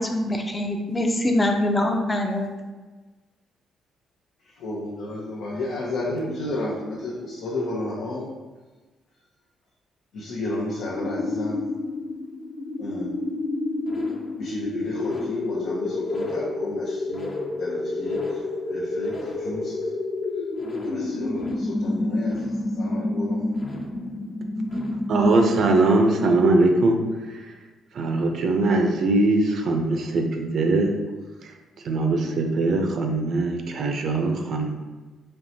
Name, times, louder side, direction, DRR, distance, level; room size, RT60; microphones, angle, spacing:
voice 1, 0.1-2.5, left 1 dB, 20° left, 3 dB, 0.6 m, -23 dB
voice 2, 4.6-8.3 10.1-11.7 12.8-13.1 14.4-17.3 17.6-18.4 18.7-19.7 20.8-23.5, left 1 dB, 75° left, -5 dB, 0.7 m, -32 dB
sound 1, 10.9-25.7, left 2 dB, 50° left, 1.1 m, -29 dB
voice 3, 25.1-27.0 27.3-27.5 27.9-30.9 31.4-31.5 31.8-34.7, right 2 dB, 65° right, 3 dB, 0.6 m, -21 dB
4.5 x 3.2 x 2.7 m, 1.3 s
cardioid pair, 90°, 0 cm